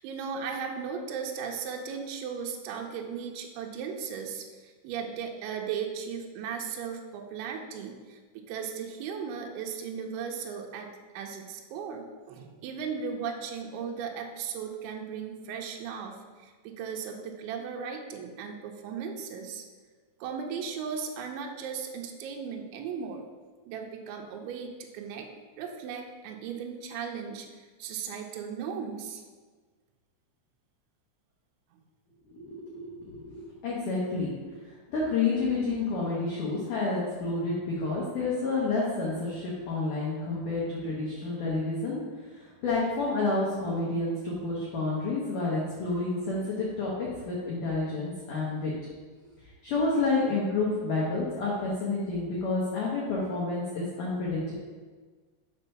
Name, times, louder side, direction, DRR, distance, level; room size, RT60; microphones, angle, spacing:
voice 1, 0.0-16.2 16.4-19.6 20.2-23.3 23.7-25.3 25.6-27.5 27.8-29.2, right 6 dB, 85° right, 2 dB, 2.9 m, -36 dB
voice 2, 32.3-34.3 34.7-42.0 42.3-48.7 49.6-54.5, left 3 dB, 75° left, -6 dB, 1.9 m, -29 dB
7.0 x 4.5 x 5.6 m, 1.4 s
omnidirectional pair, 5.4 m